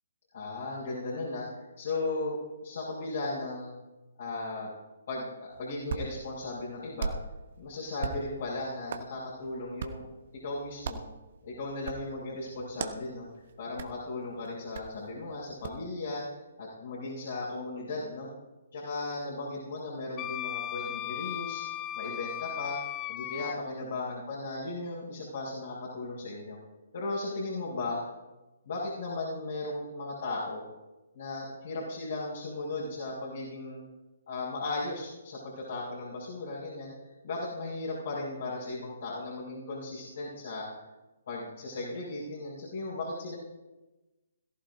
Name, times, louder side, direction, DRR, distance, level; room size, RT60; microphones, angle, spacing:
voice 1, 0.3-2.4 2.6-3.7 4.2-4.7 5.1-5.3 5.6-7.1 7.6-10.1 10.4-11.0 11.4-13.3 13.6-16.2 16.6-18.3 18.7-21.6 21.9-22.8 23.1-26.6 26.9-28.0 28.6-30.6 31.1-33.8 34.3-36.9 37.2-40.7 41.3-43.3, left 2 dB, 60° left, -9 dB, 6.1 m, -36 dB
Hands, 5.5-15.9, right 5 dB, 55° right, 1.0 m, -42 dB
Wind instrument woodwind instrument, 20.2-23.5, left 14 dB, 25° left, 0.3 m, -36 dB
21.5 x 15.0 x 2.7 m, 1.1 s
figure-of-eight pair, 130°, 0 cm